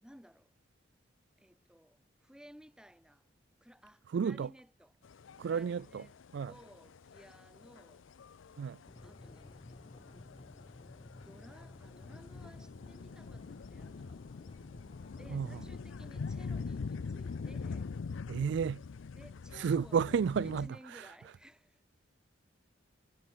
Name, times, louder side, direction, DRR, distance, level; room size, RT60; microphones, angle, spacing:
voice 1, 0.0-0.5 1.4-3.2 3.6-4.9 5.4-6.2 6.4-8.0 9.0-9.8 11.2-14.7 15.1-17.9 19.1-20.2 20.4-21.8, equal, 5° right, 3.0 m, -57 dB
voice 2, 4.1-4.5 5.4-6.1 6.3-6.5 8.6-8.8 15.3-15.6 18.3-18.8 19.6-20.7, right 6 dB, 65° right, 0.3 m, -31 dB
sound 1, 5.0-20.7, left 5 dB, 80° left, 0.5 m, -44 dB
sound 2, 8.9-17.9, left 2 dB, 30° left, 0.6 m, -53 dB
head